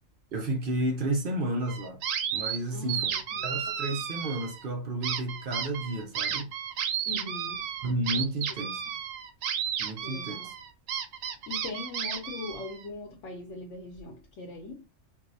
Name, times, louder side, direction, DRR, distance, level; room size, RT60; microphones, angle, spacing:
voice 1, 0.3-2.0 2.3-3.1 3.4-6.5 7.8-8.8 9.8-10.5, right 1 dB, 50° right, 0.8 m, -31 dB
sound 1, 1.7-2.6 2.9-4.6 5.0-12.8, right 8 dB, 85° right, 1.0 m, -33 dB
voice 2, 2.7-3.6 7.1-7.7 8.6-9.0 10.0-10.5 11.5-14.9, left 3 dB, 70° left, 1.0 m, -41 dB
4.6 x 2.1 x 2.5 m
omnidirectional pair, 1.3 m